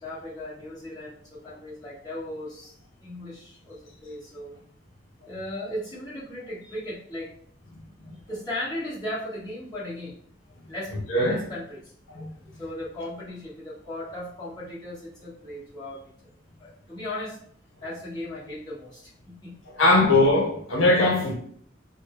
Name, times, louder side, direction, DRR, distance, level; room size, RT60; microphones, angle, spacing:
voice 1, 0.0-2.7 3.0-4.5 5.2-7.3 8.0-10.1 10.7-10.9 11.3-11.8 12.5-16.0 16.6-17.4 17.8-19.6, left 1 dB, 20° left, 1.6 m, -36 dB
voice 2, 10.9-11.5 12.1-12.3 19.7-21.3, left 2 dB, 85° left, 0.8 m, -21 dB
4.7 x 2.1 x 3.2 m
head